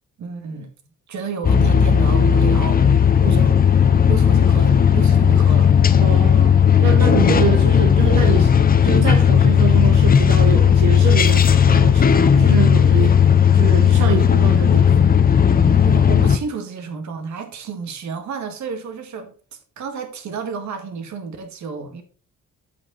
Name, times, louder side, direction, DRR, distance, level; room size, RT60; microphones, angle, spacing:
voice 1, 0.2-0.7 1.1-3.6 4.1-5.7 15.8-19.3 19.8-22.0, right 5 dB, 65° right, 2.1 m, -31 dB
sound 1, 1.4-16.4, left 8 dB, 30° left, 0.7 m, -14 dB
voice 2, 6.0-8.5 8.8-15.1, right 8 dB, 90° right, 1.1 m, -26 dB
8.5 x 8.2 x 4.1 m
cardioid pair, 160°, 31 cm